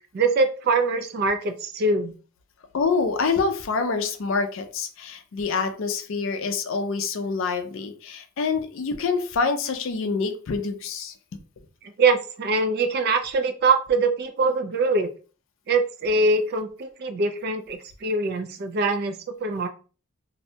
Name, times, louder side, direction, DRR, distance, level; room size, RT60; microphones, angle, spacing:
voice 1, 0.1-2.1 12.0-15.1 15.7-19.7, right 3 dB, 45° right, 7 dB, 0.3 m, -23 dB
voice 2, 2.7-11.1, left 4 dB, 60° left, 7 dB, 0.4 m, -26 dB
2.6 x 2.1 x 2.7 m, 0.37 s
head